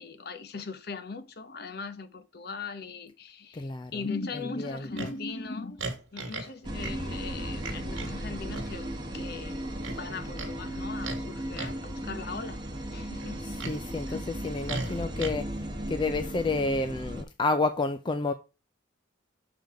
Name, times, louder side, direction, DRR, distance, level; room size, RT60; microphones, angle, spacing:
voice 1, 0.0-5.8 6.1-12.6 12.9-13.4 13.9-14.2, left 4 dB, 55° left, 0.8 m, -39 dB
voice 2, 3.5-4.1 4.3-5.1 13.4-15.5 15.9-18.3, left 3 dB, 25° left, 0.4 m, -30 dB
Livestock farm animals working animals, 4.9-5.2 5.8-6.5 6.8-7.0 7.6-8.2 8.5-8.7 9.8-10.5 11.0-11.2 11.5-11.9 13.2-13.8 14.7-15.3, right 3 dB, 85° right, 1.5 m, -37 dB
sound 1, 6.6-17.2, right 1 dB, 25° right, 1.0 m, -36 dB
6.7 x 3.9 x 4.6 m
head